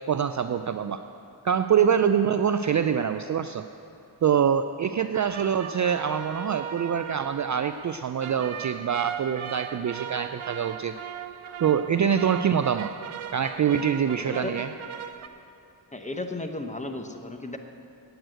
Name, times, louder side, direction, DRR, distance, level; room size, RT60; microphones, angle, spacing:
voice 1, 0.1-1.0 1.4-3.6 4.2-11.0 11.6-12.9 13.3-14.7, right 8 dB, 40° right, 9 dB, 0.4 m, -25 dB
sound 1, 5.1-15.3, right 8 dB, 80° right, 0.6 m, -38 dB
voice 2, 14.2-14.6 15.9-17.6, left 2 dB, 15° left, 6 dB, 1.0 m, -34 dB
8.9 x 8.0 x 9.0 m, 2.8 s
cardioid pair, 45°, 49 cm